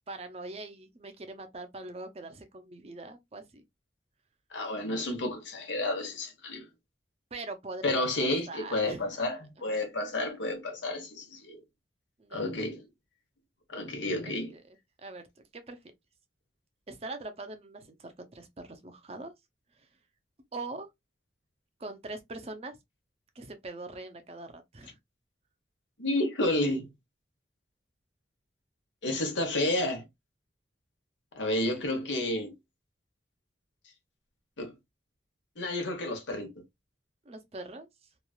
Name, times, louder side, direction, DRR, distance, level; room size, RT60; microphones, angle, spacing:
voice 1, 0.1-3.6 7.3-9.2 12.2-12.7 14.2-14.8 15.0-15.2 15.5-15.8 16.9-19.3 20.5-20.9 21.8-22.8 23.4-25.0 31.5-31.8 37.2-37.9, right 2 dB, 35° right, 0.5 m, -42 dB
voice 2, 4.5-6.6 7.8-11.6 12.3-12.8 13.7-14.5 26.0-26.9 29.0-30.0 31.3-32.5 34.6-34.7 35.6-36.5, left 1 dB, 90° left, 1.1 m, -31 dB
3.0 x 2.4 x 2.3 m
head